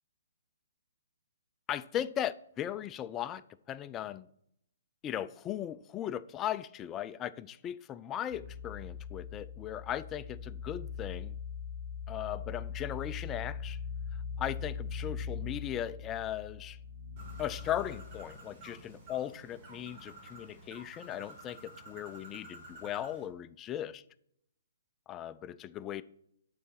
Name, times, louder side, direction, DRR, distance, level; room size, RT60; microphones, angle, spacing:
voice 1, 1.7-3.4 3.7-4.3 5.0-11.4 12.1-13.8 14.4-16.8 17.4-24.0 25.1-26.0, left 11 dB, 20° left, 0.3 m, -38 dB
sound 1, 8.3-18.2, left 6 dB, 70° right, 1.6 m, -41 dB
Bird, 17.2-23.3, right 2 dB, 30° right, 2.1 m, -51 dB
8.3 x 4.1 x 5.9 m
figure-of-eight pair, 130°, 0 cm